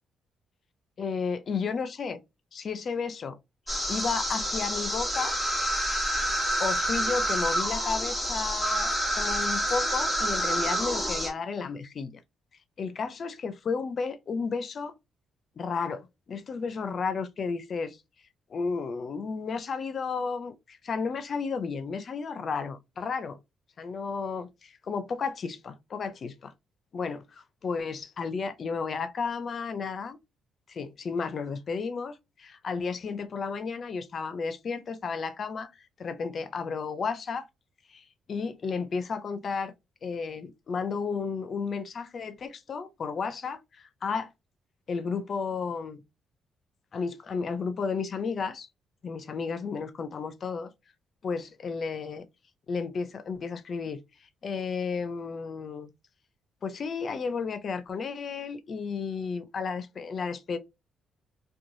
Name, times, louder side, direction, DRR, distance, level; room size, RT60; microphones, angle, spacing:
voice 1, 1.0-2.2 2.5-3.4 3.9-5.4 6.6-12.1 12.8-14.9 15.6-18.0 18.5-23.4 23.8-26.5 26.9-30.2 30.7-35.7 36.0-37.4 37.9-39.7 40.0-44.3 44.9-46.0 46.9-48.7 49.0-50.7 51.2-52.2 52.7-54.0 54.4-55.9 56.6-60.6, left 5 dB, 50° left, 0.4 m, -33 dB
sound 1, 3.7-11.3, right 1 dB, ahead, 1.3 m, -28 dB
3.0 x 2.2 x 2.6 m
cardioid pair, 90°, 0 cm